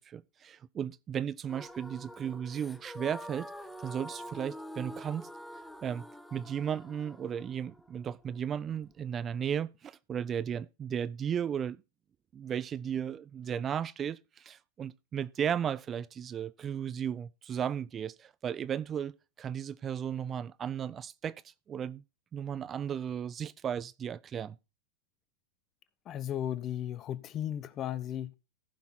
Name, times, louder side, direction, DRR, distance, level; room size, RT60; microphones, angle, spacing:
voice 1, 0.0-3.5 3.8-5.3 5.8-6.0 6.3-11.8 12.3-19.1 19.4-22.0 22.3-24.6, right 8 dB, 30° right, 0.4 m, -35 dB
sound 1, 1.5-9.4, equal, 5° left, 0.9 m, -46 dB
voice 2, 26.1-28.4, left 10 dB, 35° left, 0.8 m, -35 dB
14.5 x 5.9 x 4.3 m
hypercardioid pair, 100°, 0 cm